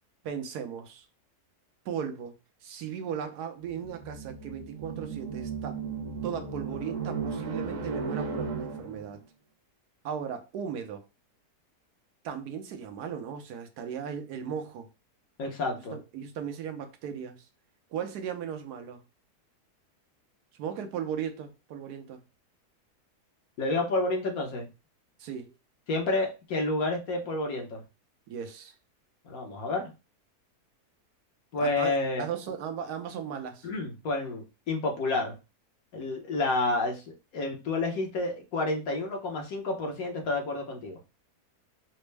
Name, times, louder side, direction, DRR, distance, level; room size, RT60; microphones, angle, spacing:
voice 1, 0.2-1.1 1.8-2.3 2.6-5.8 6.2-9.2 10.0-11.0 12.2-14.9 15.9-17.5 17.9-19.0 20.6-22.2 25.2-25.5 28.3-28.7 31.6-33.7, right 8 dB, 80° right, 1.2 m, -37 dB
sound 1, 3.6-9.2, right 4 dB, 60° right, 1.0 m, -35 dB
voice 2, 15.4-16.0 23.6-24.7 25.9-27.8 29.2-29.9 31.5-32.3 33.6-35.4 35.9-41.0, left 2 dB, 70° left, 1.3 m, -30 dB
4.3 x 2.0 x 3.2 m
omnidirectional pair, 1.7 m